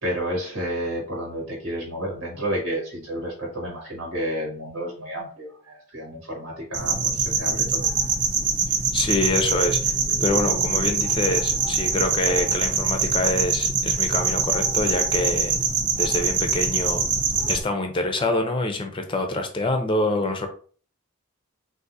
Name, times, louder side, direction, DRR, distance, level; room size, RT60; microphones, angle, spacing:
voice 1, 0.0-7.9, equal, 85° right, -1 dB, 1.3 m, -31 dB
sound 1, 6.7-17.6, right 5 dB, 35° right, 0.5 m, -24 dB
voice 2, 8.9-9.9 10.2-15.6 16.0-17.1 17.5-20.5, left 2 dB, 25° left, 6 dB, 0.5 m, -25 dB
3.7 x 2.6 x 2.7 m, 0.43 s
head